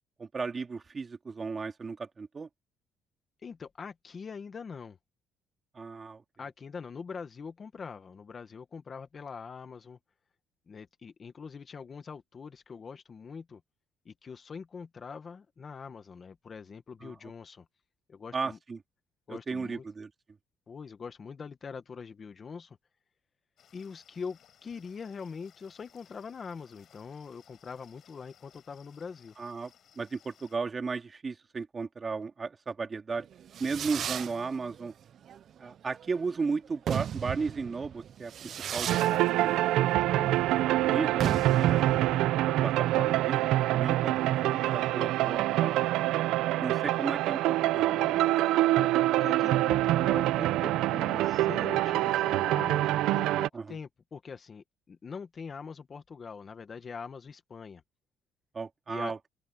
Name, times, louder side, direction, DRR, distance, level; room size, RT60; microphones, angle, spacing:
voice 1, 0.2-2.5 5.7-6.2 17.0-17.1 18.3-18.8 19.3-20.1 29.4-33.3 33.6-34.9 35.6-39.6 40.7-41.9 42.6-45.9 46.6-47.9 53.5-53.8 58.5-59.2, right 4 dB, 25° right, 2.7 m, -35 dB
voice 2, 3.4-5.0 6.4-10.0 10.7-13.6 14.0-17.6 18.1-18.6 19.3-19.8 20.7-22.8 23.7-29.3 40.1-40.4 47.9-48.9 49.2-57.8 58.9-59.1, left 5 dB, 30° left, 1.3 m, -43 dB
sound 1, 23.6-30.6, left 9 dB, 50° left, 7.7 m, -62 dB
Fireworks, 33.2-45.4, right 9 dB, 50° right, 0.4 m, -37 dB
sound 2, 38.9-53.5, right 15 dB, 80° right, 0.8 m, -26 dB
open air
cardioid pair, 135°, 0 cm